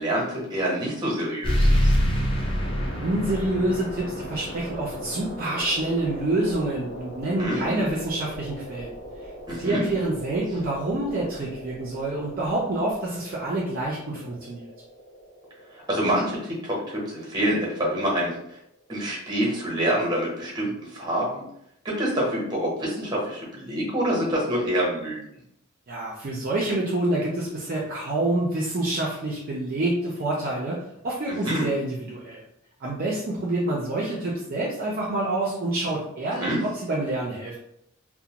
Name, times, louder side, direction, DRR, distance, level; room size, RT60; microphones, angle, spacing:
voice 1, 0.0-1.9 7.4-7.8 9.5-9.8 15.9-18.3 18.9-21.4 21.8-25.2 31.3-31.7 36.4-36.6, right 1 dB, 20° right, -3 dB, 0.9 m, -26 dB
sound 1, 1.4-16.5, equal, 25° left, 0.4 m, -30 dB
voice 2, 3.0-8.9 9.6-14.6 25.9-32.4 32.8-37.5, right 2 dB, 45° right, -4 dB, 0.4 m, -27 dB
2.5 x 2.0 x 2.8 m, 0.76 s
head